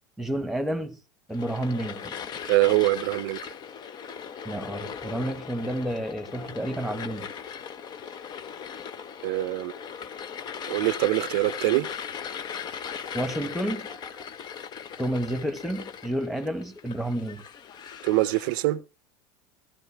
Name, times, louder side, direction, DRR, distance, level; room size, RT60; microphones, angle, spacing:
voice 1, 0.2-1.0 1.3-2.2 4.4-7.3 13.1-14.3 15.0-17.4, right 1 dB, ahead, 1.3 m, -30 dB
sound 1, 1.3-18.6, left 7 dB, 40° left, 0.9 m, -38 dB
voice 2, 2.4-3.4 9.2-9.7 10.7-11.9 18.0-18.8, right 18 dB, 70° right, 0.6 m, -24 dB
15.0 x 13.5 x 3.3 m
supercardioid pair, 100°, 11 cm